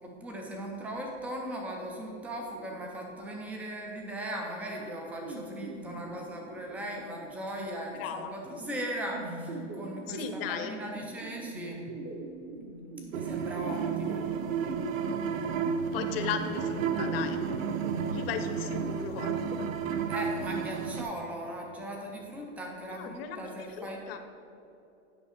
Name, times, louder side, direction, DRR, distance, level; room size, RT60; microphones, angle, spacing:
voice 1, 0.0-11.8 13.1-14.3 20.1-24.0, right 1 dB, 5° right, 0 dB, 0.3 m, -38 dB
sound 1, 5.2-18.9, right 2 dB, 35° right, 0.9 m, -42 dB
voice 2, 8.0-8.3 10.1-11.1 15.9-17.4 18.1-19.7 22.9-24.2, left 7 dB, 50° left, 8 dB, 0.8 m, -37 dB
sound 2, 13.1-21.0, right 6 dB, 85° right, 0.8 m, -32 dB
9.0 x 5.3 x 4.9 m, 2.9 s
supercardioid pair, 145°, 39 cm